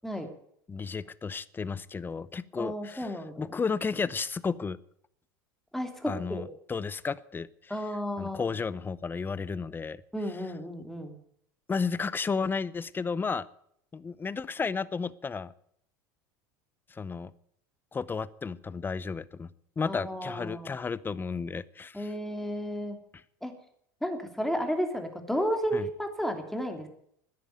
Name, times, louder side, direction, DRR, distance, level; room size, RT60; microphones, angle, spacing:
voice 1, 0.7-3.1 3.4-4.8 6.1-7.8 8.2-10.0 11.7-13.5 13.9-15.5 16.9-17.3 17.9-19.5 19.8-22.1 25.7-25.9, left 5 dB, 20° left, 20 dB, 0.7 m, -33 dB
voice 2, 2.6-3.5 5.7-6.4 7.7-8.5 10.1-11.2 19.9-20.8 21.9-23.0 23.4-23.5 24.0-26.9, equal, 5° left, 5 dB, 3.0 m, -32 dB
13.5 x 10.0 x 9.3 m, 0.69 s
hypercardioid pair, 100°, 11 cm